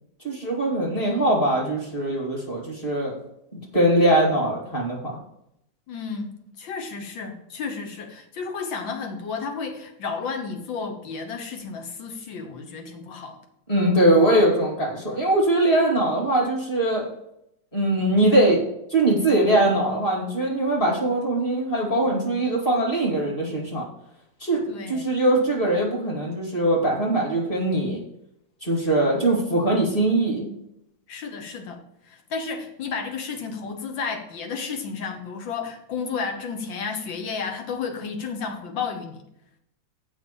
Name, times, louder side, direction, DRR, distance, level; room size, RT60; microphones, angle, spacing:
voice 1, 0.2-3.1 3.5-5.1 13.7-17.0 17.7-18.6 18.9-23.8 24.4-24.6 24.9-28.0 28.6-30.5, right 1 dB, 30° left, -1 dB, 2.7 m, -21 dB
voice 2, 5.9-13.4 24.7-25.0 31.1-39.2, left 5 dB, 85° left, 4 dB, 1.9 m, -32 dB
7.2 x 5.4 x 7.0 m, 0.78 s
omnidirectional pair, 2.0 m